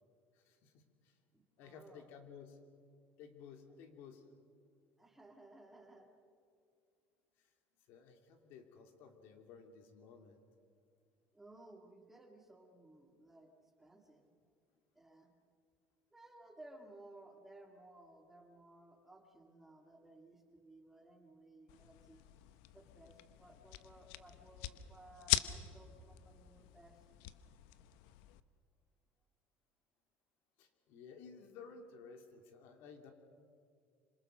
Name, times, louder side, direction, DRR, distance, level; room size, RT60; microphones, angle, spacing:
voice 1, 0.5-0.9 1.6-2.6 3.2-4.2 7.9-10.4 30.6-33.1, left 6 dB, 60° left, 5 dB, 2.8 m, -55 dB
voice 2, 1.3-2.1 5.0-6.1 11.3-14.2 14.9-15.3 16.1-22.2 22.7-27.0, right 1 dB, 5° right, 3 dB, 2.0 m, -59 dB
sound 1, 21.7-28.4, left 15 dB, 90° left, 0.9 m, -42 dB
26.5 x 26.0 x 6.4 m, 2.3 s
cardioid pair, 170°, 4 cm